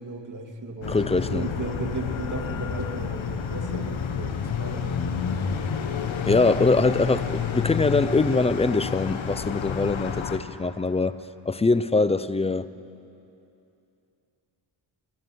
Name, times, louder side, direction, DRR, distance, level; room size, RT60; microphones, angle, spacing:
voice 1, 0.0-5.0, right 4 dB, 40° right, 2.1 m, -36 dB
sound 1, 0.8-10.4, left 7 dB, 85° left, 1.0 m, -29 dB
voice 2, 0.9-1.5 6.3-11.2 11.5-12.7, left 3 dB, 15° left, 0.4 m, -23 dB
15.0 x 12.0 x 7.7 m
cardioid pair, 60°, 46 cm